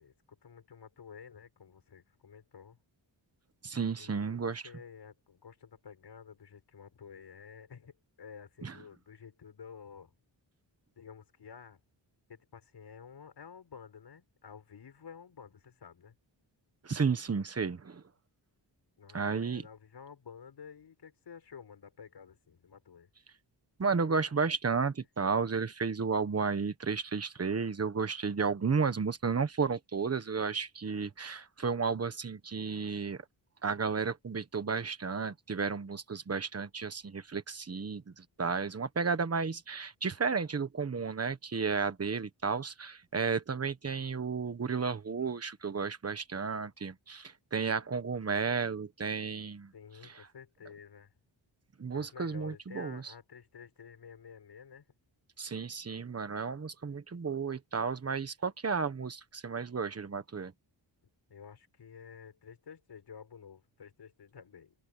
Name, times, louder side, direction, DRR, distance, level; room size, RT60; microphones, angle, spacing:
voice 1, 0.0-2.8 4.0-10.1 11.0-11.8 12.3-16.2 19.0-23.1 49.7-51.1 51.9-54.9 61.3-64.7, left 6 dB, 60° left, 5.6 m, -51 dB
voice 2, 3.6-4.6 8.6-8.7 16.8-18.0 19.1-19.6 23.8-33.2 33.6-49.7 51.8-53.0 55.4-60.5, right 5 dB, 30° right, 1.3 m, -33 dB
wide cardioid pair, 165°, 46 cm